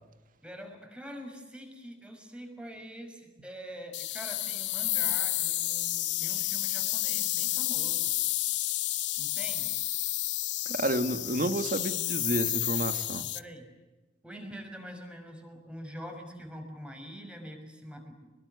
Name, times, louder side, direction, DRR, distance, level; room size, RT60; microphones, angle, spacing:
voice 1, 0.4-8.1 9.2-9.7 13.3-13.7 14.2-18.3, equal, 5° right, 6.2 m, -44 dB
sound 1, 3.9-13.4, left 16 dB, 75° left, 1.0 m, -30 dB
voice 2, 10.7-13.3, right 1 dB, 50° right, 1.9 m, -30 dB
26.0 x 22.0 x 9.5 m
head